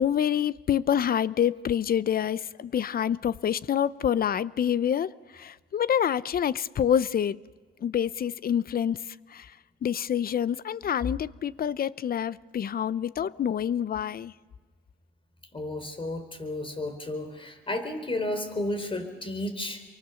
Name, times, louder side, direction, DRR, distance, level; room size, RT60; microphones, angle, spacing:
voice 1, 0.0-7.4 7.8-9.5 9.8-14.3, left 9 dB, 50° left, 0.7 m, -27 dB
voice 2, 15.5-19.8, left 1 dB, 25° left, 4.0 m, -32 dB
29.0 x 24.0 x 7.0 m
cardioid pair, 90°, 20 cm